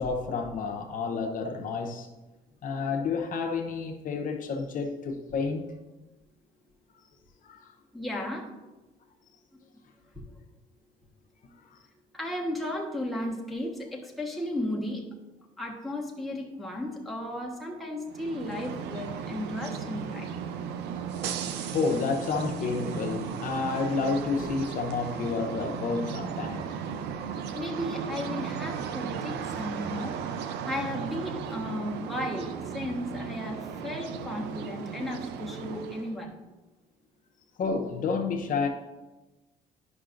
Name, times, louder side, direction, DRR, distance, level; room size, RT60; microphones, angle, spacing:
voice 1, 0.0-2.1 2.6-5.7 7.4-7.7 11.6-11.8 21.7-26.8 37.6-38.7, left 4 dB, 50° left, 0.8 m, -30 dB
voice 2, 7.9-8.5 10.1-10.2 12.1-15.0 15.6-20.3 27.5-30.2 30.7-36.3, left 1 dB, ahead, 1.2 m, -34 dB
sound 1, 18.1-36.2, right 7 dB, 85° right, 0.6 m, -36 dB
10.5 x 5.7 x 2.5 m
cardioid pair, 110°, 17 cm